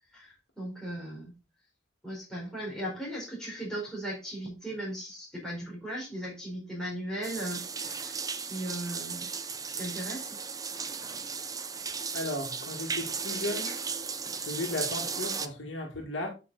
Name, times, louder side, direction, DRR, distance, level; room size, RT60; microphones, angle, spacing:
voice 1, 0.1-1.3 2.0-9.3 9.8-10.4, right 1 dB, 5° left, 4.1 m, -37 dB
sound 1, 7.2-15.5, right 5 dB, 20° right, 0.6 m, -35 dB
voice 2, 12.1-13.8 14.4-16.3, left 2 dB, 75° left, 1.8 m, -35 dB
8.7 x 5.2 x 3.9 m
head